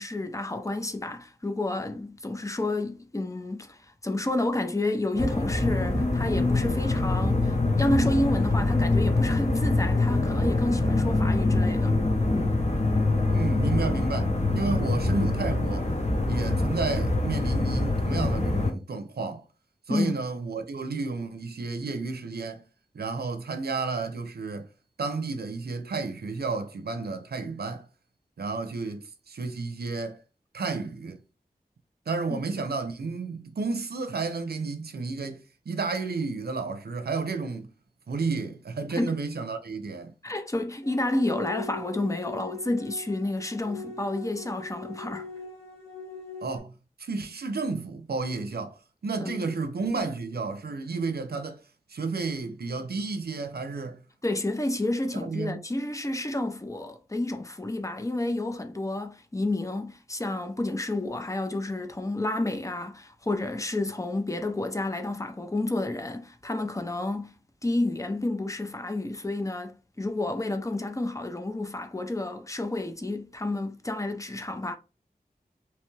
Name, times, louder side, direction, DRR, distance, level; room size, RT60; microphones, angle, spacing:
voice 1, 0.0-12.0 12.3-12.6 19.9-20.2 32.3-32.4 39.0-39.2 40.2-45.3 49.2-49.4 54.2-67.3 67.6-74.8, left 2 dB, 20° left, 0.5 m, -30 dB
sound 1, 5.1-18.7, left 2 dB, 45° left, 0.9 m, -24 dB
voice 2, 13.3-15.9 16.3-19.4 19.9-22.6 22.9-24.7 25.0-27.9 28.4-30.2 30.5-31.2 32.1-37.7 38.1-40.1 46.4-51.6 51.9-54.0 55.1-55.6, right 4 dB, 85° right, 0.5 m, -32 dB
sound 2, 40.8-46.6, left 3 dB, 90° left, 1.2 m, -41 dB
3.0 x 2.3 x 3.1 m
wide cardioid pair, 50°, 16 cm